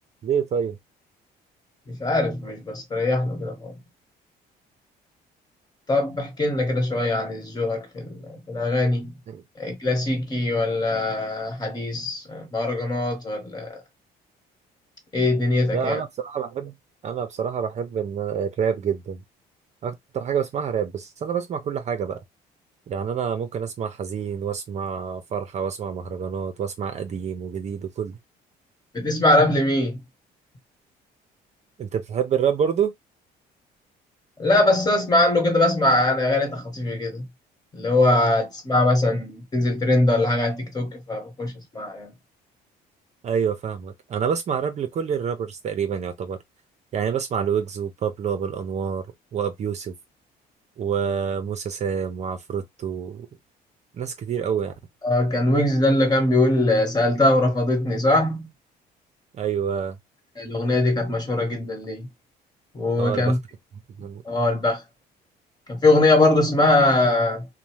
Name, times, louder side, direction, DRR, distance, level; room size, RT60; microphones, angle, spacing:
voice 1, 0.2-0.8 9.3-9.4 15.7-16.7 17.0-19.2 19.8-22.2 22.9-28.2 31.8-32.9 43.2-46.4 46.9-49.1 49.3-49.9 50.8-53.3 53.9-54.7 59.4-60.0 63.0-63.4 64.0-64.2, right 7 dB, 40° right, 0.5 m, -27 dB
voice 2, 1.9-3.7 5.9-9.1 9.6-13.8 15.1-16.0 28.9-30.0 34.4-37.2 37.7-42.1 55.0-58.5 60.4-62.1 62.7-63.4 64.2-64.8 65.7-67.5, left 2 dB, 25° left, 1.2 m, -22 dB
2.7 x 2.0 x 3.0 m
cardioid pair, 110°, 17 cm